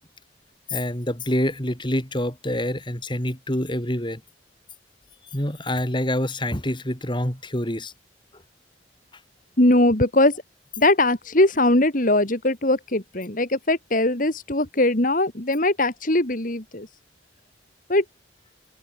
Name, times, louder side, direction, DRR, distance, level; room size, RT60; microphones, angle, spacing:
voice 1, 0.7-4.2 5.3-7.9 8.3-8.4, left 1 dB, 25° left, 4.8 m, -26 dB
voice 2, 9.6-10.4 10.8-16.9 17.9-18.0, left 1 dB, 45° left, 2.8 m, -20 dB
head